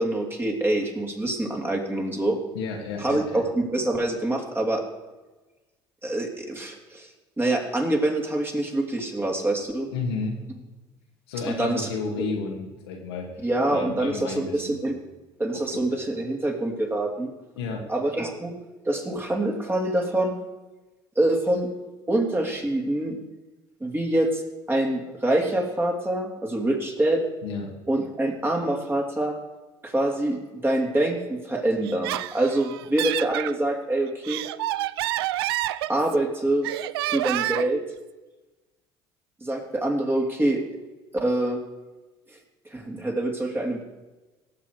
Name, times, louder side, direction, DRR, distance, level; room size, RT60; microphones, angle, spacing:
voice 1, 0.0-2.4 3.0-4.8 6.0-7.1 7.4-9.9 11.5-11.9 13.4-15.0 15.4-17.3 17.9-18.5 18.8-20.4 21.1-21.7 22.1-23.1 23.8-24.4 24.7-27.2 27.9-29.3 29.8-30.4 30.6-34.4 35.9-36.7 37.1-37.8 39.4-40.6 41.1-41.6 42.7-43.8, right 1 dB, 15° right, 1 dB, 3.2 m, -25 dB
voice 2, 2.5-3.4 9.9-10.4 11.3-13.4 13.7-14.8 15.5-15.6 15.9-16.0 17.5-17.9 27.4-27.7, left 4 dB, 85° left, 0 dB, 2.3 m, -32 dB
Laughter, 31.8-33.5 34.1-36.3 36.6-37.8, right 15 dB, 85° right, 0.4 m, -28 dB
18.0 x 7.4 x 4.8 m, 1.2 s
hypercardioid pair, 65°, 13 cm